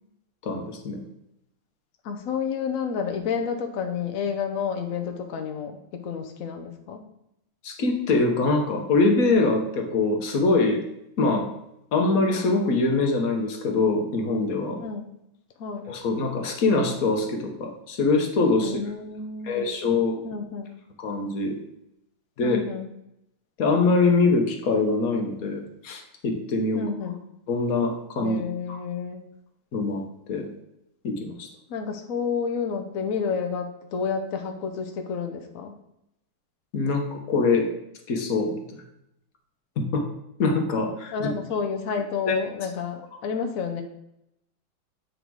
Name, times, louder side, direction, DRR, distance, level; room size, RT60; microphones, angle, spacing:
voice 1, 0.4-1.0 7.6-10.8 11.2-11.5 11.9-14.8 15.9-18.8 19.4-20.2 21.0-21.6 22.4-22.6 23.6-26.8 27.5-28.4 28.7-28.8 29.7-30.0 30.3-30.5 31.0-31.5 36.7-37.7 38.1-38.6 39.8-40.1 40.4-41.3 42.3-42.4, left 3 dB, 50° left, 3 dB, 1.2 m, -23 dB
voice 2, 2.0-7.0 14.8-15.1 15.6-15.9 18.6-19.7 20.2-20.7 22.4-22.9 26.7-27.2 28.2-29.3 31.7-35.7 41.1-43.8, left 6 dB, 75° left, 4 dB, 0.7 m, -30 dB
8.0 x 3.8 x 4.6 m, 0.82 s
omnidirectional pair, 2.2 m